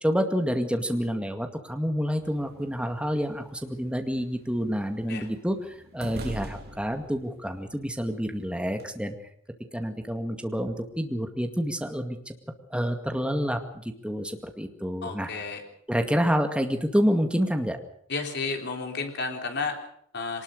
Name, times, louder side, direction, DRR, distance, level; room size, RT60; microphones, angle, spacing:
voice 1, 0.0-9.2 9.7-12.3 12.7-13.6 14.0-15.3 15.9-17.8, equal, 5° right, 5 dB, 2.1 m, -28 dB
sound 1, 2.2-8.9, right 1 dB, 55° right, 3.3 m, -45 dB
voice 2, 15.0-15.7 18.1-20.4, left 4 dB, 60° left, 3 dB, 3.7 m, -32 dB
23.0 x 19.5 x 6.6 m, 0.66 s
head